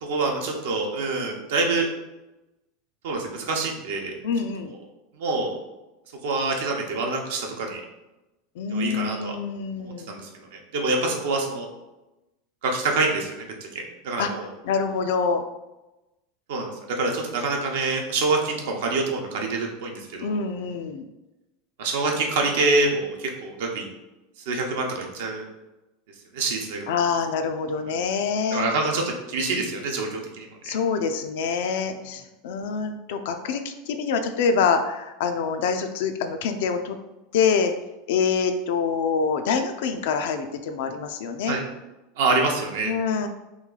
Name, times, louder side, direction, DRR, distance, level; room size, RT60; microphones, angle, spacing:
voice 1, 0.0-1.9 3.0-4.1 5.2-5.6 6.2-7.8 8.7-9.3 9.8-11.7 12.6-13.5 13.7-14.5 16.5-20.3 21.8-23.8 24.5-25.5 26.3-26.8 28.5-29.0 29.3-30.5 41.5-41.6 42.2-42.9, right 3 dB, 80° right, 1 dB, 0.6 m, -26 dB
voice 2, 4.2-4.7 8.6-10.1 14.2-14.3 14.6-15.4 20.2-21.0 26.9-28.7 30.6-37.0 37.3-37.7 38.1-41.6 42.8-43.3, left 5 dB, 75° left, 7 dB, 0.3 m, -25 dB
3.0 x 2.4 x 3.7 m, 1.0 s
supercardioid pair, 135°, 0 cm